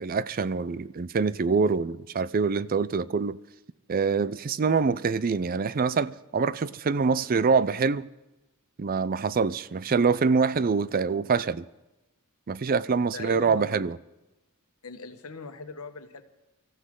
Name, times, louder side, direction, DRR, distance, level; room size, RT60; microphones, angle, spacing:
voice 1, 0.0-3.4 3.9-8.1 8.8-11.7 12.5-14.0, right 5 dB, 40° right, 0.4 m, -25 dB
voice 2, 13.1-13.8 14.8-16.2, left 4 dB, 75° left, 1.3 m, -40 dB
24.5 x 14.5 x 3.8 m
head